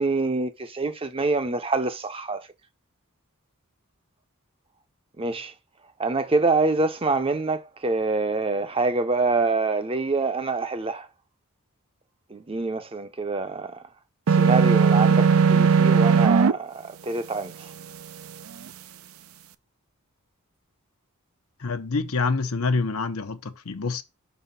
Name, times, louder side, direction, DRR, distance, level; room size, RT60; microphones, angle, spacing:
voice 1, 0.0-2.5 5.2-5.5 6.0-11.1 12.3-13.8 14.3-17.7, right 3 dB, 25° right, 0.6 m, -26 dB
sound 1, 14.3-16.5, right 5 dB, 70° right, 0.5 m, -17 dB
voice 2, 21.6-24.0, left 4 dB, 75° left, 0.9 m, -26 dB
6.0 x 4.1 x 5.5 m
head